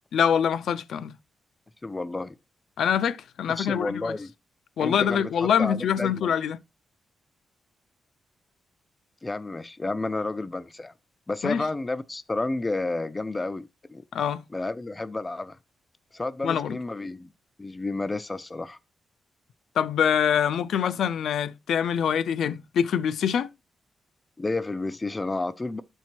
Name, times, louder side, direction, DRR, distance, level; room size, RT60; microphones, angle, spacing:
voice 1, 0.1-1.1 2.8-4.1 4.8-6.6 11.4-11.6 14.1-14.4 16.4-16.8 19.8-23.5, left 8 dB, 75° left, 0.4 m, -24 dB
voice 2, 1.8-2.4 3.6-4.3 4.8-6.3 9.2-10.9 11.3-14.0 14.5-15.6 16.1-17.3 17.6-18.8 24.4-25.8, left 2 dB, 15° left, 0.4 m, -31 dB
12.5 x 4.5 x 2.8 m
wide cardioid pair, 150°, 0 cm